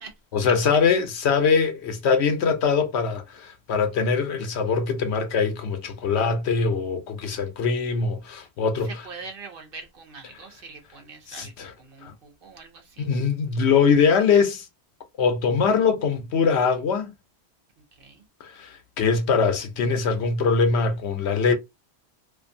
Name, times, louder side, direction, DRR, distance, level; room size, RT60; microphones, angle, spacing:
voice 1, 0.3-8.9 11.3-11.7 12.0-12.1 13.0-14.7 15.2-17.1 18.4-21.5, left 5 dB, 75° left, 0.9 m, -22 dB
voice 2, 8.8-13.1 18.0-18.2, right 4 dB, 60° right, 1.0 m, -43 dB
2.5 x 2.5 x 2.6 m
omnidirectional pair, 1.1 m